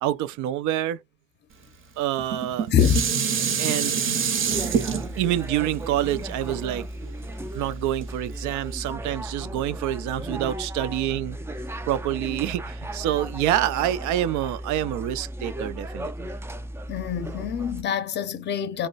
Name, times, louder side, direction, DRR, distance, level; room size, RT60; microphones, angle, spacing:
voice 1, 0.0-1.0 2.0-2.7 3.6-4.0 5.2-6.9 7.5-11.4 11.9-16.1, right 12 dB, 75° right, 0.4 m, -27 dB
Dishes pots and pans, 2.2-7.5 8.0-8.1, right 7 dB, 45° right, 0.7 m, -26 dB
sound 1, 4.5-17.8, right 1 dB, 10° right, 0.3 m, -35 dB
voice 2, 16.9-18.9, left 8 dB, 35° left, 0.6 m, -24 dB
2.2 x 2.1 x 3.8 m
cardioid pair, 95°, 30 cm